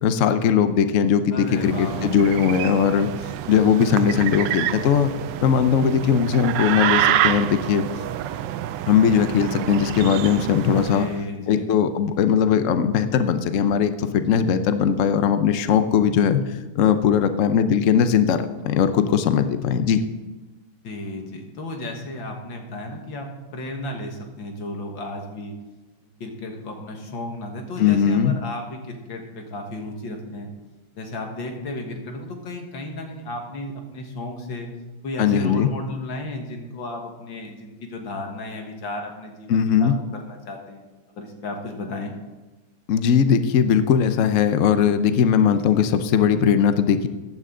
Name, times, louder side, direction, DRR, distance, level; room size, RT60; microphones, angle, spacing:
voice 1, 0.0-3.1 3.5-5.1 5.4-7.9 8.9-11.1 11.5-16.4 16.7-20.0 27.8-28.4 35.2-35.7 39.5-40.0 42.9-47.1, left 7 dB, 90° left, 10 dB, 0.6 m, -19 dB
voice 2, 1.3-2.1 10.9-11.7 20.8-25.5 26.2-30.5 30.9-34.7 35.0-42.1, left 2 dB, 65° left, 3 dB, 2.3 m, -34 dB
sound 1, 1.4-11.2, right 11 dB, 75° right, 1.1 m, -27 dB
15.0 x 10.0 x 3.8 m, 1.2 s
omnidirectional pair, 2.2 m